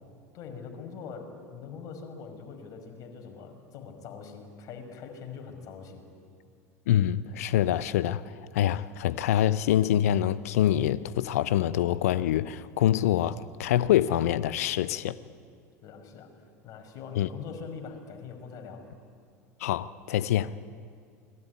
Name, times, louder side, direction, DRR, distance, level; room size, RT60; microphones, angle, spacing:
voice 1, 0.3-6.1 15.8-16.3 16.6-18.9, left 5 dB, 45° left, 5.7 m, -43 dB
voice 2, 6.9-15.2 17.2-17.3 19.6-20.5, left 11 dB, 70° left, 0.8 m, -25 dB
28.5 x 21.5 x 9.6 m
figure-of-eight pair, 75°, 8 cm